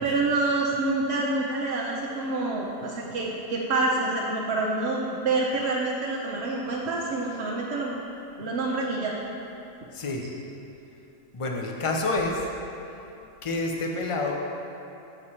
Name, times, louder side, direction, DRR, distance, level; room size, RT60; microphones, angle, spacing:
voice 1, 0.0-7.9 8.4-9.2, right 2 dB, 55° right, -4 dB, 0.9 m, -27 dB
voice 2, 9.9-10.3 11.3-12.4 13.4-14.4, left 2 dB, 60° left, 0 dB, 0.3 m, -28 dB
6.9 x 6.4 x 4.3 m, 2.9 s
omnidirectional pair, 1.5 m